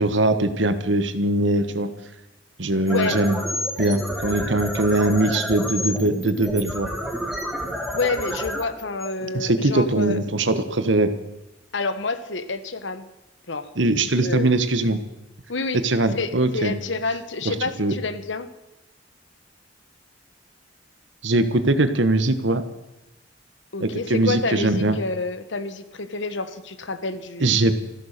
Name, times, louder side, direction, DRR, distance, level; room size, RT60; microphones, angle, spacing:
voice 1, 0.0-1.9 2.6-3.4 3.8-6.9 9.2-11.1 13.8-15.0 15.8-16.8 17.4-17.9 21.2-22.6 23.8-25.0 27.4-27.7, right 2 dB, 75° right, 11 dB, 1.4 m, -21 dB
sound 1, 2.8-9.8, equal, ahead, 2.6 m, -30 dB
voice 2, 2.9-3.2 7.9-10.2 11.7-13.0 13.5-13.7 14.2-14.6 15.5-15.8 16.1-18.5 23.7-27.6, left 3 dB, 75° left, 12 dB, 1.2 m, -28 dB
14.5 x 13.0 x 6.7 m, 0.94 s
head